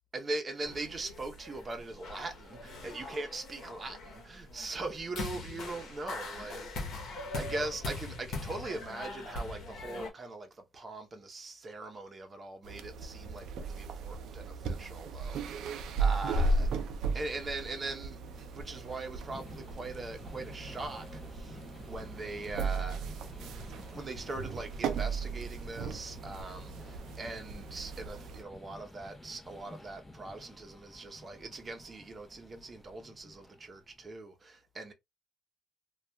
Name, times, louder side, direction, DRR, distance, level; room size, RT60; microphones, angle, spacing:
voice 1, 0.1-16.7 17.1-23.0 23.9-34.9, right 2 dB, 35° right, 0.8 m, -41 dB
sound 1, 0.6-10.1, left 2 dB, 75° left, 0.9 m, -41 dB
sound 2, 12.6-28.4, right 3 dB, 80° right, 0.4 m, -36 dB
sound 3, 15.1-34.2, left 1 dB, 20° left, 0.7 m, -52 dB
2.7 x 2.3 x 2.3 m
cardioid pair, 90°, 0 cm